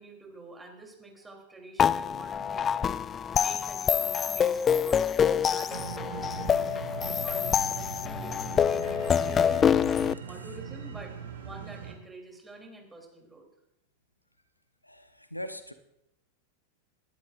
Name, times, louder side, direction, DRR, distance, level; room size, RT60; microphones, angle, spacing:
voice 1, 0.0-2.9 3.3-6.7 7.0-9.7 10.3-11.2 11.4-13.5, right 2 dB, 10° right, 1 dB, 3.2 m, -48 dB
sound 1, 1.8-10.1, left 8 dB, 25° left, 0.3 m, -26 dB
sound 2, 5.7-11.9, right 7 dB, 65° right, 1.8 m, -40 dB
voice 2, 14.8-15.7, equal, 85° left, 10 dB, 0.8 m, -40 dB
20.5 x 11.5 x 2.5 m, 0.82 s
figure-of-eight pair, 90°, 0 cm